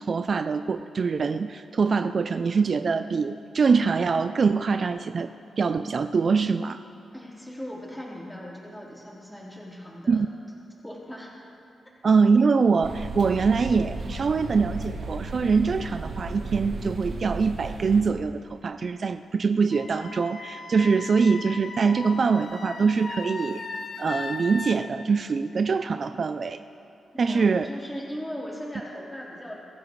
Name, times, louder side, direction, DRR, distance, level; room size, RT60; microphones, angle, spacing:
voice 1, 0.0-5.3 5.6-6.8 10.1-10.3 12.0-23.6 24.0-26.6 27.2-27.7, right 5 dB, 50° right, 11 dB, 0.4 m, -23 dB
voice 2, 7.1-10.2 10.8-11.3 27.1-29.6, equal, 5° left, -6 dB, 4.0 m, -38 dB
sound 1, 12.8-18.0, right 2 dB, 65° right, 1.7 m, -35 dB
Wind instrument woodwind instrument, 19.7-24.8, left 3 dB, 50° left, 1.2 m, -37 dB
23.5 x 14.5 x 3.2 m, 2.7 s
cardioid pair, 100°, 0 cm